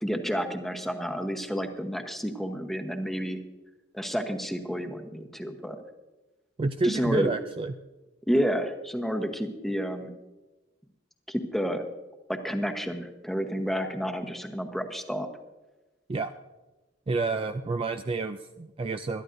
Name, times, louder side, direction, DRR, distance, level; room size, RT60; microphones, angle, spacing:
voice 1, 0.0-3.4 3.9-5.8 6.8-7.3 8.3-10.1 11.3-11.9 12.3-15.3, equal, ahead, 5 dB, 1.0 m, -30 dB
voice 2, 6.6-7.7 16.1-16.3 17.1-19.2, right 3 dB, 30° right, 8 dB, 0.4 m, -29 dB
21.5 x 12.5 x 2.6 m, 1.1 s
head